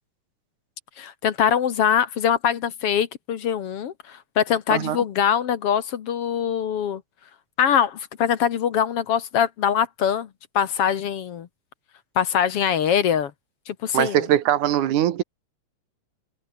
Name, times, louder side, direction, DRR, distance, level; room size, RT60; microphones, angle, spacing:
voice 1, 1.0-7.0 7.6-10.3 10.6-11.5 12.2-13.3 13.7-14.3, left 8 dB, 60° left, 2.0 m, -23 dB
voice 2, 13.9-15.2, right 12 dB, 90° right, 2.8 m, -21 dB
omnidirectional pair, 3.4 m